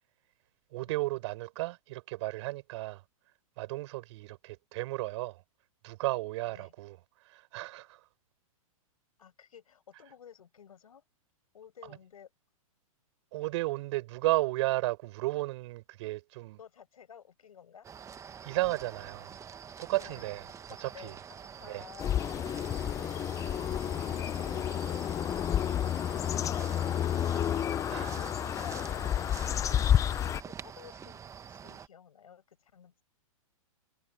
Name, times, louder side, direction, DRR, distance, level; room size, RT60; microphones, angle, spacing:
voice 1, 0.7-3.0 3.6-5.4 5.8-8.1 11.9-12.0 13.3-16.6 18.4-19.4 19.8-20.4 20.8-21.2 21.6-21.8 27.9-28.2, right 19 dB, 50° right, 6.8 m, -34 dB
voice 2, 9.2-11.0 11.5-12.3 16.6-17.9 20.0-20.3 20.8-22.3 28.0-29.3 29.7-31.2 31.5-32.9, left 8 dB, 80° left, 5.3 m, -54 dB
sound 1, 17.8-31.9, right 7 dB, 15° right, 1.4 m, -47 dB
sound 2, 22.0-30.4, left 10 dB, 20° left, 0.6 m, -30 dB
sound 3, 22.9-29.4, right 16 dB, 35° right, 6.6 m, -58 dB
hypercardioid pair, 120°, 18 cm